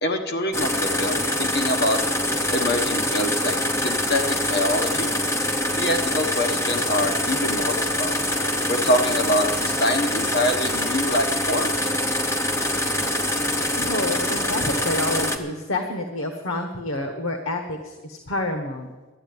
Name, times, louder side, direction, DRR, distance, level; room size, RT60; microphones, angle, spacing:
voice 1, 0.0-2.0 2.5-3.6 3.8-4.2 4.5-5.1 5.8-8.2 8.7-11.7, left 1 dB, 55° left, 5 dB, 1.2 m, -25 dB
sound 1, 0.5-15.4, left 1 dB, 15° left, 0.8 m, -24 dB
voice 2, 13.8-18.9, left 2 dB, 85° left, 4 dB, 1.1 m, -28 dB
12.5 x 7.9 x 9.4 m, 1.3 s
head